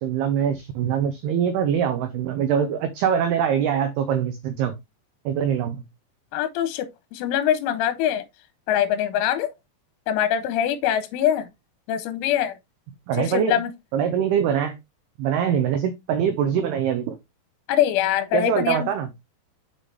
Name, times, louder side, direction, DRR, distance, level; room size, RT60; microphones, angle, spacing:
voice 1, 0.0-4.8 5.3-5.8 13.1-13.6 13.9-14.8 15.2-17.2 18.3-19.1, right 8 dB, 85° right, 2.3 m, -23 dB
voice 2, 6.3-6.9 7.1-8.3 8.7-9.5 10.1-11.5 11.9-12.6 13.1-13.7 17.7-18.9, left 10 dB, 90° left, 3.1 m, -23 dB
6.7 x 5.8 x 3.2 m
omnidirectional pair, 5.6 m